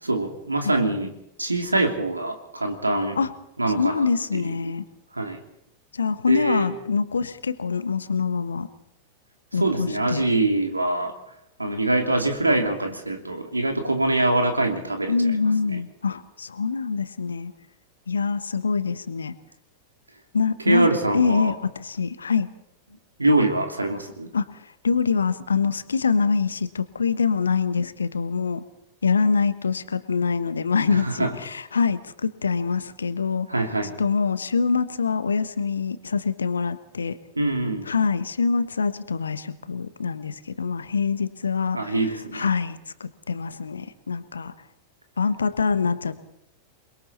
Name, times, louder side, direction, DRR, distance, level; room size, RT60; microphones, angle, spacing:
voice 1, 0.0-1.1 1.4-3.2 3.6-4.6 5.1-5.4 6.3-6.7 9.6-11.2 11.6-15.4 15.7-15.8 20.6-21.5 23.2-24.3 30.9-31.4 33.5-33.9 37.4-37.9 41.7-42.5, right 2 dB, 80° right, 4 dB, 3.0 m, -24 dB
voice 2, 3.8-4.8 5.9-8.7 9.5-10.2 15.1-17.5 18.1-19.3 20.3-20.9 21.1-22.5 24.3-24.6 24.8-28.6 29.0-33.5 34.0-37.2 37.9-41.9 42.3-44.5 45.2-46.2, left 5 dB, 75° left, 13 dB, 1.3 m, -24 dB
28.5 x 22.0 x 4.3 m, 0.81 s
figure-of-eight pair, 90°, 0 cm